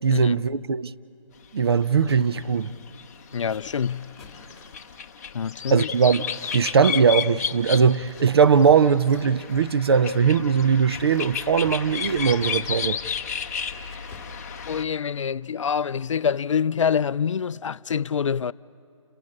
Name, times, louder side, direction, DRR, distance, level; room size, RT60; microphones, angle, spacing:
voice 1, 0.0-0.9 1.5-2.7 5.7-6.2 6.5-13.0, right 6 dB, 50° right, 0.5 m, -20 dB
sound 1, 1.8-2.1 2.4-14.8, left 7 dB, 30° left, 0.8 m, -33 dB
sound 2, 2.1-14.8, left 3 dB, ahead, 2.6 m, -51 dB
voice 2, 3.3-4.1 5.3-5.9 14.7-18.5, left 7 dB, 65° left, 0.4 m, -26 dB
29.5 x 10.5 x 8.7 m
hypercardioid pair, 160°, 17 cm